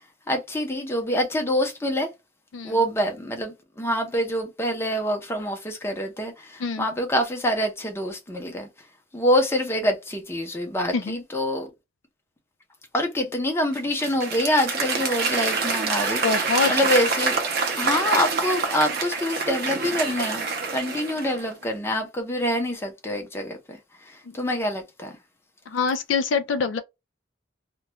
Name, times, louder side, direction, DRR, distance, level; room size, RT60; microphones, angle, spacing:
voice 1, 0.3-2.1 2.6-8.7 9.1-11.7 12.9-16.2 16.7-17.4 17.8-23.8 24.0-25.2, equal, 15° left, 0.6 m, -26 dB
Applause / Crowd, 13.7-21.5, right 4 dB, 55° right, 0.6 m, -26 dB
voice 2, 16.2-16.7 24.3-24.4 25.7-26.8, left 5 dB, 75° left, 0.4 m, -25 dB
2.3 x 2.2 x 2.8 m
head